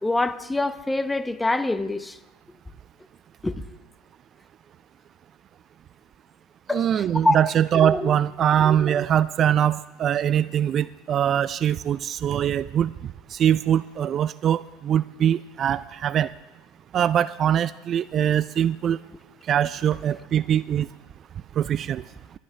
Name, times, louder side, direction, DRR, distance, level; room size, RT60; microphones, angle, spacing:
voice 1, 0.0-2.2 3.4-3.6 6.7-6.9 7.2-7.4 7.8-8.2, left 2 dB, 10° left, 0.8 m, -24 dB
voice 2, 6.7-12.9 13.3-16.3 16.9-19.0 19.5-20.9 21.6-22.0, right 10 dB, 45° right, 0.3 m, -22 dB
21.0 x 12.0 x 3.2 m
hypercardioid pair, 75°, 0 cm